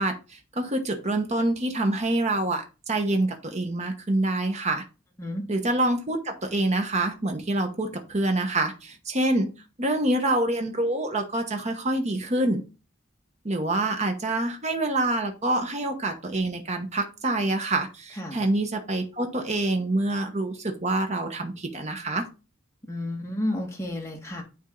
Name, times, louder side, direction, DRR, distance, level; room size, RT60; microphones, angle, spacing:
voice 1, 0.0-4.8 5.5-9.5 9.8-12.6 13.4-22.2, right 2 dB, 35° right, 1.0 m, -26 dB
voice 2, 22.9-24.4, left 1 dB, 15° left, 1.6 m, -31 dB
9.5 x 3.6 x 3.8 m
head